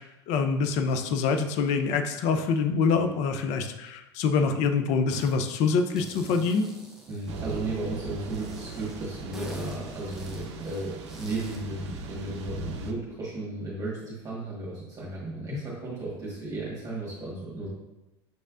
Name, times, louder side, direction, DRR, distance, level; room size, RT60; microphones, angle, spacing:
voice 1, 0.0-6.7 15.5-15.6, left 5 dB, 55° left, 7 dB, 0.5 m, -25 dB
sound 1, 5.1-5.4 5.7-7.8 8.3-11.7, equal, 5° right, 1.0 m, -45 dB
voice 2, 7.1-17.7, right 2 dB, 25° right, -6 dB, 1.6 m, -35 dB
Thunder / Rain, 7.3-12.9, right 3 dB, 75° right, 0.5 m, -39 dB
6.7 x 3.1 x 2.5 m, 0.97 s
hypercardioid pair, 85°, 15 cm